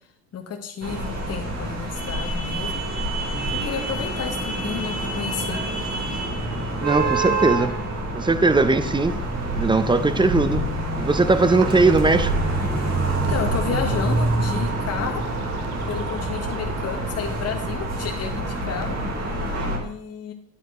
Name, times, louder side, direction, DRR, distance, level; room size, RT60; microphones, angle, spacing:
voice 1, 0.3-2.7 3.6-5.6 13.3-15.2 15.9-19.0 19.8-20.3, left 7 dB, 30° left, 1.4 m, -31 dB
sound 1, 0.8-19.8, right 1 dB, 30° right, 4.0 m, -27 dB
voice 2, 6.8-7.8 8.1-9.2 9.5-10.7 11.0-12.3, right 3 dB, 10° right, 0.7 m, -19 dB
sound 2, 8.8-19.1, right 3 dB, 70° right, 1.4 m, -33 dB
10.0 x 8.9 x 3.1 m
hypercardioid pair, 75°, 49 cm